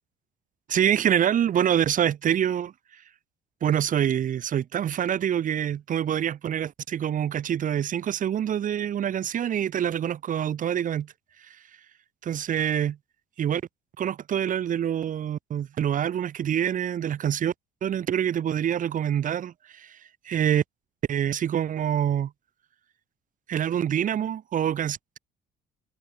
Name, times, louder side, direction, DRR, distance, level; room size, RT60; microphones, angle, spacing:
voice 1, 0.7-2.7 3.6-11.1 12.2-13.0 13.4-13.6 14.0-17.5 17.8-20.0 20.2-20.6 21.1-22.3 23.5-25.2, right 9 dB, 50° right, 2.6 m, -26 dB
cardioid pair, 110°, 17 cm